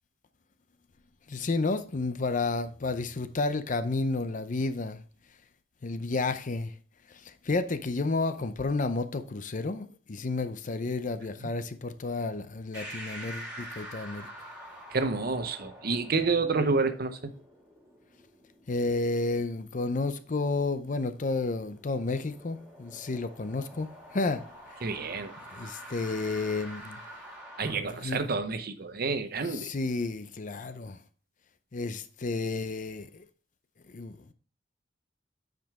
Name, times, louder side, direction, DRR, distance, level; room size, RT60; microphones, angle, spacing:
voice 1, 1.3-5.0 5.8-6.7 7.1-14.3 18.7-24.4 25.5-27.0 27.8-28.2 29.4-31.0 31.7-33.3 33.9-34.3, left 3 dB, 45° left, 0.6 m, -31 dB
sound 1, 12.7-27.8, equal, 5° right, 2.6 m, -47 dB
voice 2, 14.9-17.3 24.8-25.3 27.6-29.7, right 4 dB, 55° right, 0.8 m, -29 dB
8.9 x 5.2 x 3.6 m
head